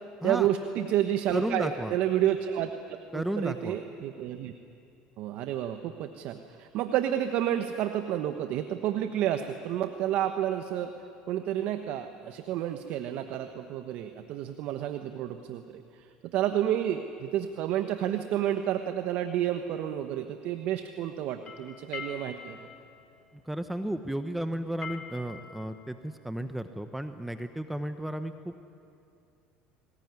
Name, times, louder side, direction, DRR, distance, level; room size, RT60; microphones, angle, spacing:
voice 1, 0.2-4.5 5.2-10.9 11.3-16.1 16.3-22.7, right 11 dB, 65° right, 7 dB, 1.2 m, -30 dB
voice 2, 1.3-1.9 3.1-3.8 23.4-28.6, right 1 dB, 5° right, 8 dB, 1.0 m, -33 dB
sound 1, 21.3-27.0, left 6 dB, 45° left, 4.3 m, -45 dB
23.0 x 20.0 x 9.7 m, 2.7 s
supercardioid pair, 90°, 3 cm